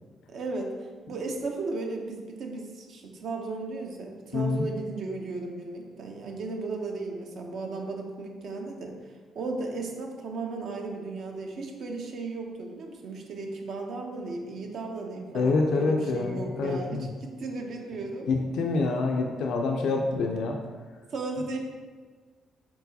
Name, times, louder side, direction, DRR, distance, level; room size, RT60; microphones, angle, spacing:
voice 1, 0.3-0.7 1.1-9.0 9.3-18.3 21.1-21.6, right 3 dB, 65° right, 2 dB, 0.6 m, -35 dB
voice 2, 4.3-4.7 15.3-17.1 18.3-20.6, left 3 dB, 80° left, 2 dB, 0.4 m, -26 dB
4.5 x 3.7 x 2.7 m, 1.5 s
cardioid pair, 90°, 0 cm